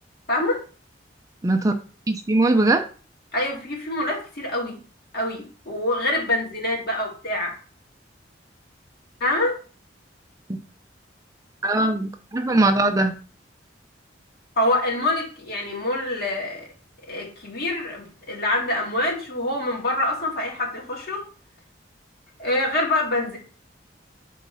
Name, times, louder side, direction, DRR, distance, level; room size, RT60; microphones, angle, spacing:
voice 1, 0.3-0.6 3.3-4.8 5.1-7.5 9.2-9.6 14.6-16.7 17.1-21.2 22.4-23.4, left 1 dB, 55° left, 2.2 m, -25 dB
voice 2, 1.4-1.7 2.1-2.8 11.6-13.1, right 2 dB, 20° right, 0.4 m, -20 dB
4.6 x 4.1 x 5.5 m
head